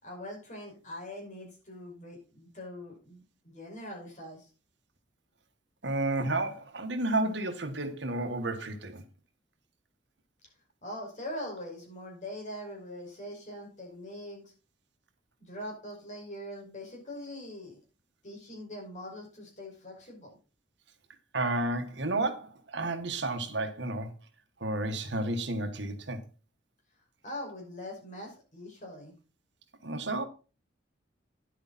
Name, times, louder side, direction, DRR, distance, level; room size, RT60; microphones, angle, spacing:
voice 1, 0.0-4.5 10.8-14.5 15.4-17.8 18.2-20.4 27.2-29.1, left 1 dB, 40° left, 5.5 m, -42 dB
voice 2, 5.8-9.0 21.3-24.1 24.6-26.2 29.8-30.2, right 2 dB, 65° right, 1.5 m, -31 dB
10.5 x 8.0 x 4.2 m
head